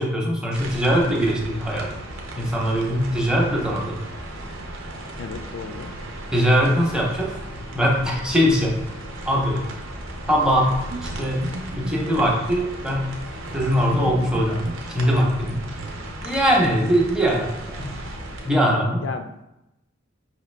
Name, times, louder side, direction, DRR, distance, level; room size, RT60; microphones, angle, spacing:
voice 1, 0.0-1.9 2.3-4.0 6.3-7.3 7.7-8.7 9.2-9.6 10.3-10.8 11.0-11.4 11.8-13.1 13.5-15.6 16.2-18.0 18.4-19.0, equal, 5° right, -2 dB, 0.7 m, -21 dB
sound 1, 0.5-18.5, right 1 dB, 75° right, 0.8 m, -36 dB
voice 2, 5.2-5.9 19.0-19.4, left 5 dB, 60° left, 6 dB, 0.3 m, -34 dB
sound 2, 10.9-12.4 13.6-15.9, right 2 dB, 45° right, 0.4 m, -36 dB
5.0 x 2.9 x 3.2 m, 0.90 s
head